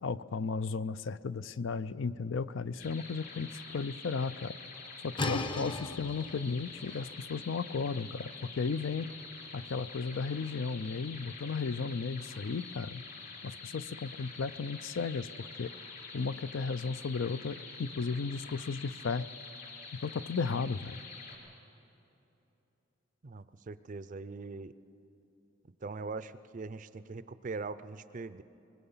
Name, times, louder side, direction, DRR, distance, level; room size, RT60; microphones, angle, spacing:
voice 1, 0.0-4.5 5.0-9.1 9.5-13.0 13.4-15.7 16.1-19.3 19.9-21.0, left 4 dB, 70° left, 15 dB, 0.5 m, -35 dB
sound 1, 2.8-21.4, left 4 dB, 50° left, 4.1 m, -47 dB
sound 2, 5.2-10.8, left 2 dB, 25° left, 0.6 m, -40 dB
voice 2, 23.2-24.7 25.8-28.4, right 4 dB, 40° right, 14 dB, 0.4 m, -41 dB
24.5 x 20.5 x 5.6 m, 3.0 s
head